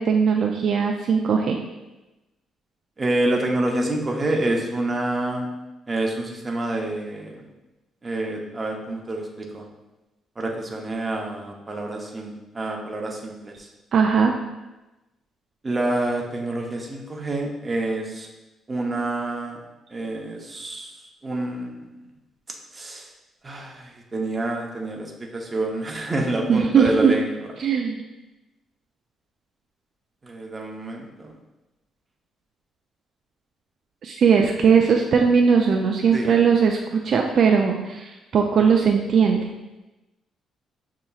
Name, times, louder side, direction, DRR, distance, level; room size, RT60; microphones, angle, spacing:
voice 1, 0.0-1.6 13.9-14.3 26.5-27.2 27.6-28.0 34.0-39.5, right 6 dB, 60° right, 2 dB, 0.3 m, -19 dB
voice 2, 3.0-5.5 5.9-7.4 8.0-9.6 10.4-13.7 15.6-18.3 18.7-19.6 19.9-20.9 21.2-21.7 22.7-23.1 23.4-27.4 30.2-31.3 36.1-36.3, right 2 dB, 25° right, 0 dB, 0.7 m, -27 dB
6.5 x 2.8 x 2.3 m, 1.0 s
cardioid pair, 90°, 0 cm